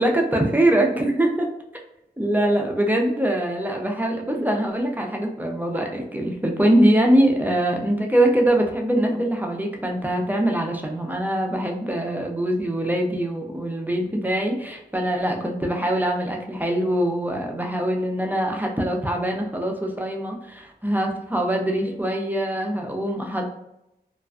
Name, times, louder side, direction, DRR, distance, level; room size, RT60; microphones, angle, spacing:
voice 1, 0.0-1.5 2.2-23.4, right 1 dB, 10° right, 1 dB, 0.4 m, -23 dB
2.3 x 2.2 x 2.4 m, 0.84 s
wide cardioid pair, 75°, 17 cm